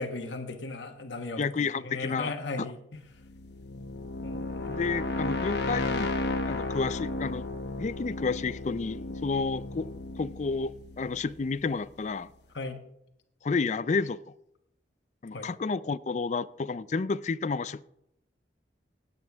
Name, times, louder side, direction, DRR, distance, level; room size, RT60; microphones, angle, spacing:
voice 1, 0.0-3.0 4.2-4.8 12.5-12.8 15.3-15.5, left 3 dB, 90° left, 6 dB, 1.2 m, -37 dB
voice 2, 1.4-2.3 4.7-6.1 6.5-7.5 7.8-9.9 10.2-12.3 13.4-14.2 15.2-17.9, left 4 dB, 40° left, 15 dB, 0.4 m, -30 dB
sound 1, 3.1-11.9, left 2 dB, 65° left, 1.0 m, -34 dB
16.0 x 8.7 x 3.5 m, 0.77 s
head